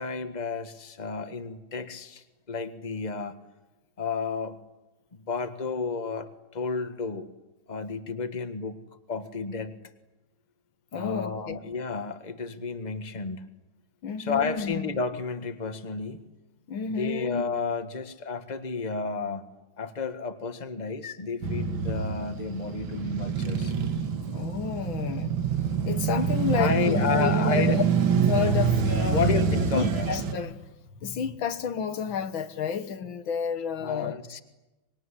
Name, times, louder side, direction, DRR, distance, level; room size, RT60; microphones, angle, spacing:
voice 1, 0.0-3.4 4.0-4.6 5.1-7.3 7.7-8.8 9.1-9.8 10.9-13.4 14.2-16.3 16.9-19.4 19.8-23.7 26.6-27.8 29.1-30.1 33.8-34.4, left 4 dB, 25° left, 1.6 m, -31 dB
voice 2, 10.9-11.6 14.0-14.9 16.7-17.4 24.3-25.4 25.9-27.8 28.2-29.3 29.7-30.7 31.0-34.2, left 7 dB, 85° left, 2.1 m, -30 dB
Male speech man speaking / Motorcycle / Idling, 21.4-30.3, right 6 dB, 85° right, 2.4 m, -26 dB
25.0 x 22.0 x 10.0 m
omnidirectional pair, 2.1 m